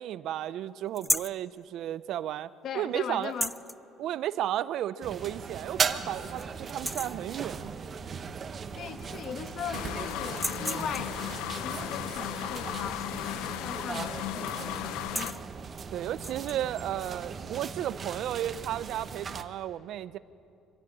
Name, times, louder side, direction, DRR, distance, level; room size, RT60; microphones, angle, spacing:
voice 1, 0.0-3.3 4.0-7.8 15.9-20.2, right 12 dB, 65° right, 16 dB, 0.6 m, -33 dB
sound 1, 1.0-1.4 3.2-3.8 5.1-5.2 5.7-5.8 6.2-6.4 6.7-7.2 8.6-8.7 9.0-9.7 10.3-11.2 13.5-13.9 14.1-14.4 14.9-15.4 16.1-16.6, equal, ahead, 0.4 m, -34 dB
voice 2, 2.6-3.5 8.7-11.1 11.5-15.4, left 8 dB, 55° left, 9 dB, 1.2 m, -39 dB
sound 2, 5.0-19.4, right 5 dB, 35° right, 1.0 m, -38 dB
sound 3, 9.7-15.3, left 14 dB, 85° left, 0.6 m, -36 dB
24.5 x 15.5 x 8.8 m, 2.7 s
cardioid pair, 115°, 0 cm